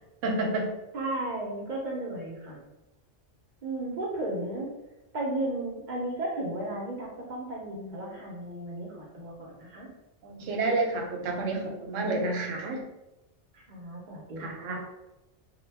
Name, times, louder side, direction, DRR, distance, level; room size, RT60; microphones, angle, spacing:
voice 1, 0.2-0.7 10.2-12.8 14.4-14.8, right 2 dB, 90° right, 1 dB, 0.9 m, -29 dB
voice 2, 0.9-2.6 3.6-4.7 5.1-9.9 13.5-14.6, right 1 dB, 45° right, -2 dB, 0.7 m, -34 dB
2.2 x 2.1 x 3.3 m, 0.96 s
omnidirectional pair, 1.3 m